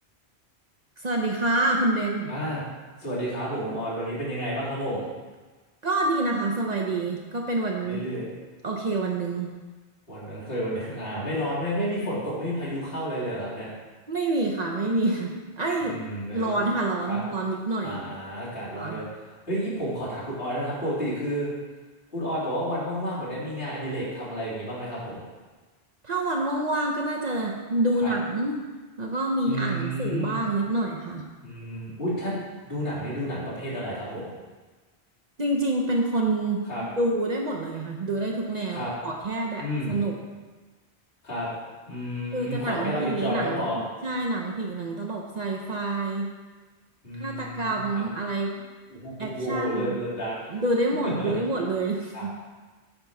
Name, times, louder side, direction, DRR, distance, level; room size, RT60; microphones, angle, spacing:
voice 1, 1.0-2.3 5.8-8.0 8.6-9.5 14.1-16.0 16.3-18.0 18.8-19.0 26.0-28.6 29.0-31.3 35.4-40.1 42.3-46.3 47.2-48.5 49.2-49.9 50.5-52.3, right 2 dB, 45° right, -1 dB, 0.7 m, -27 dB
voice 2, 2.3-2.6 3.0-5.1 7.8-8.3 10.1-13.7 15.8-16.6 17.1-17.2 17.8-19.0 19.5-21.5 22.1-25.2 28.0-28.1 29.4-30.4 31.4-32.4 32.6-34.3 36.7-36.8 38.7-38.9 39.6-39.9 41.2-41.5 41.9-43.8 47.0-48.0 48.9-50.3 51.0-51.3 52.1-52.3, equal, 60° left, -9 dB, 2.8 m, -31 dB
8.8 x 3.0 x 5.7 m, 1.3 s
omnidirectional pair, 1.1 m